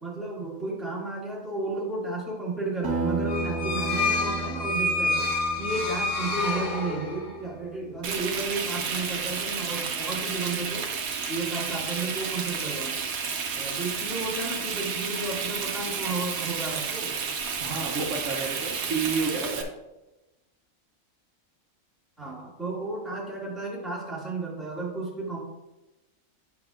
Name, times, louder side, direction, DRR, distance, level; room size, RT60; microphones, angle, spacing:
voice 1, 0.0-5.3 5.6-10.9 11.3-13.0 13.6-17.2 22.2-25.4, right 3 dB, ahead, -7 dB, 2.1 m, -33 dB
Acoustic guitar, 2.8-7.7, right 3 dB, 20° right, 0.8 m, -34 dB
sound 1, 3.3-7.4, left 2 dB, 65° left, 1.3 m, -28 dB
Frying (food), 8.0-19.6, right 6 dB, 90° right, 1.2 m, -31 dB
voice 2, 17.6-19.7, right 4 dB, 65° right, -1 dB, 1.0 m, -30 dB
8.6 x 6.0 x 2.4 m, 1.0 s
omnidirectional pair, 1.4 m